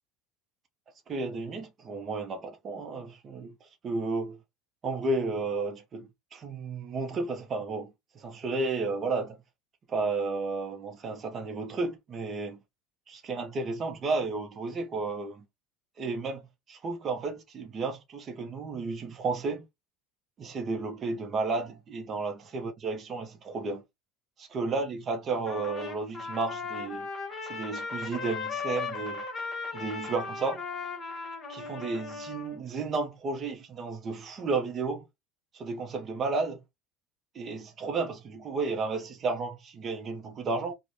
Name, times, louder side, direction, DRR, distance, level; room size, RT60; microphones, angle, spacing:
voice 1, 1.1-4.4 4.8-9.4 9.9-12.6 13.1-15.5 16.0-16.4 16.7-19.7 20.4-23.8 24.4-27.1 27.4-29.2 29.7-30.6 31.5-35.1 35.5-36.6 37.3-40.7, right 3 dB, 35° right, 0.5 m, -32 dB
Trumpet, 25.5-32.6, left 4 dB, 20° left, 0.9 m, -37 dB
3.1 x 2.0 x 2.6 m
supercardioid pair, 130°, 0 cm